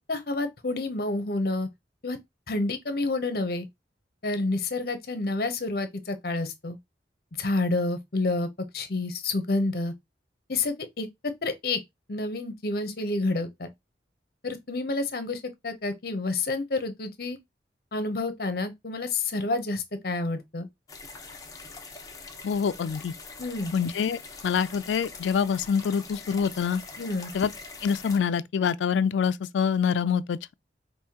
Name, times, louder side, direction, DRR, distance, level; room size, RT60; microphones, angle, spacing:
voice 1, 0.1-1.7 2.0-2.2 2.5-3.6 4.2-6.8 7.4-8.5 8.7-9.9 10.5-11.1 11.4-11.8 12.1-13.7 14.4-17.4 17.9-20.7 23.4-23.7 27.0-27.3, left 2 dB, 55° left, 0.8 m, -29 dB
sound 1, 20.9-28.2, left 4 dB, 20° left, 0.8 m, -43 dB
voice 2, 22.4-23.1 23.7-26.8 27.3-27.5 27.8-30.5, left 6 dB, 85° left, 0.3 m, -26 dB
5.5 x 2.7 x 2.9 m
head